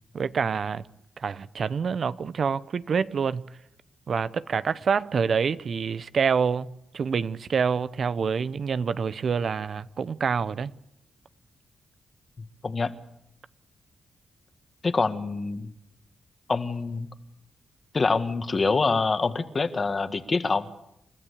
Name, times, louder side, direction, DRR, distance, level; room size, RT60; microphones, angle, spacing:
voice 1, 0.1-0.8 1.2-3.4 4.1-6.7 6.9-10.7, right 6 dB, 60° right, 0.7 m, -26 dB
voice 2, 14.8-15.7 16.5-17.1 17.9-20.7, left 4 dB, 40° left, 1.7 m, -25 dB
29.0 x 13.5 x 8.4 m
cardioid pair, 75°, 0 cm